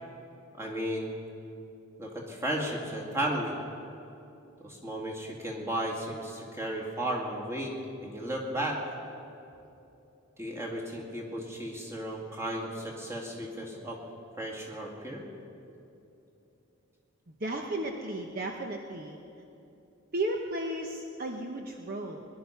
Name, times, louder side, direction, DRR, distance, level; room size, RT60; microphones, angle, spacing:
voice 1, 0.6-1.1 2.0-3.6 4.6-7.7 8.0-8.8 10.4-14.0 14.4-15.2, right 1 dB, 15° right, -2 dB, 2.2 m, -34 dB
voice 2, 17.4-19.2 20.1-22.3, right 1 dB, 45° right, 2 dB, 0.9 m, -34 dB
21.0 x 11.5 x 5.8 m, 2.9 s
head